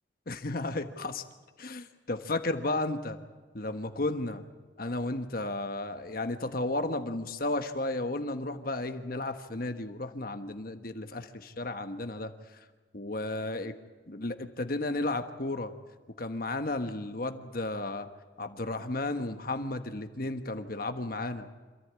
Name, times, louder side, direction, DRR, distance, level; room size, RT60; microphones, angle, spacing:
voice 1, 0.3-1.2 1.6-3.2 3.5-4.4 4.8-12.6 12.9-13.7 14.1-15.7 16.2-18.1 18.4-21.5, left 2 dB, 50° left, 8 dB, 1.3 m, -33 dB
26.5 x 14.5 x 8.9 m, 1.4 s
head